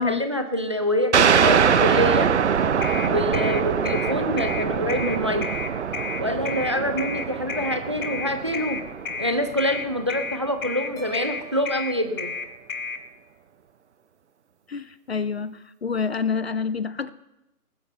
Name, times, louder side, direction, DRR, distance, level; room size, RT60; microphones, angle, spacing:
voice 1, 0.0-2.4 3.1-5.5 6.2-8.8 9.2-12.3, equal, 20° right, 6 dB, 0.5 m, -26 dB
sound 1, 1.1-10.3, right 7 dB, 50° right, 0.7 m, -23 dB
sound 2, 2.8-13.0, left 5 dB, 60° left, 1.5 m, -32 dB
sound 3, 11.0-13.2, right 4 dB, 5° left, 2.0 m, -44 dB
voice 2, 14.7-17.1, left 5 dB, 45° left, 17 dB, 0.5 m, -27 dB
20.0 x 11.5 x 3.3 m, 0.95 s
figure-of-eight pair, 140°, 46 cm